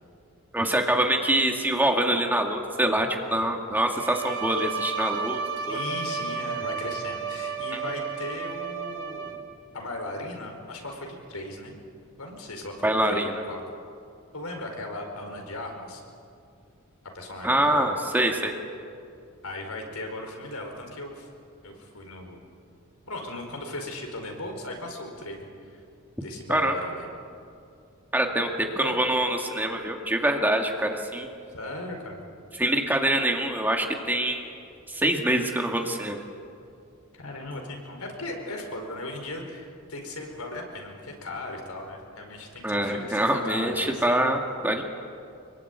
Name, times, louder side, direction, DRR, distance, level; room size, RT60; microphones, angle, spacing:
voice 1, 0.5-5.4 5.7-5.8 7.7-7.8 12.8-13.3 17.4-18.6 26.5-26.7 28.1-31.3 32.6-34.4 34.9-36.2 42.6-44.8, right 1 dB, 10° right, 2 dB, 2.1 m, -25 dB
Bowed string instrument, 3.8-9.7, right 5 dB, 60° right, 2.9 m, -32 dB
voice 2, 5.6-9.3 9.7-11.8 12.2-13.6 14.3-16.0 17.1-17.9 19.4-21.3 21.6-22.4 23.1-25.8 26.2-27.1 28.8-29.0 31.5-32.2 37.1-44.2, left 2 dB, 80° left, 3 dB, 4.9 m, -37 dB
25.5 x 23.0 x 9.5 m, 2.4 s
head